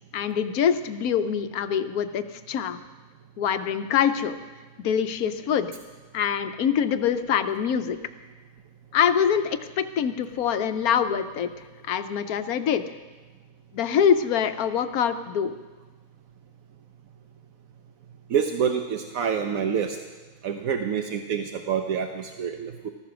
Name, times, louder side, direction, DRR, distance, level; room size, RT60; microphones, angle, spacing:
voice 1, 0.1-2.8 3.4-4.4 4.8-5.7 6.1-8.0 8.9-11.5 11.8-12.8 13.7-15.5, left 8 dB, 90° left, 10 dB, 1.3 m, -24 dB
voice 2, 18.3-20.0 20.4-22.9, right 7 dB, 75° right, 5 dB, 1.2 m, -27 dB
14.5 x 14.0 x 6.1 m, 1.3 s
omnidirectional pair, 1.5 m